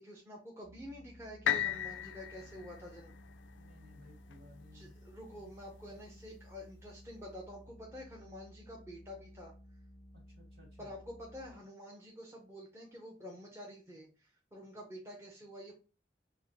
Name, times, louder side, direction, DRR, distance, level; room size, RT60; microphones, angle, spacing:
voice 1, 0.0-3.1 4.7-9.5 10.8-15.7, equal, 15° right, -2 dB, 0.7 m, -48 dB
sound 1, 0.6-11.6, left 1 dB, 45° right, 1.1 m, -56 dB
sound 2, 1.5-5.4 6.0-6.1, left 10 dB, 90° left, 0.3 m, -37 dB
voice 2, 3.6-5.0 5.3-5.5 10.1-10.9, left 1 dB, 60° right, -1 dB, 1.8 m, -59 dB
5.5 x 2.1 x 2.9 m, 0.34 s
head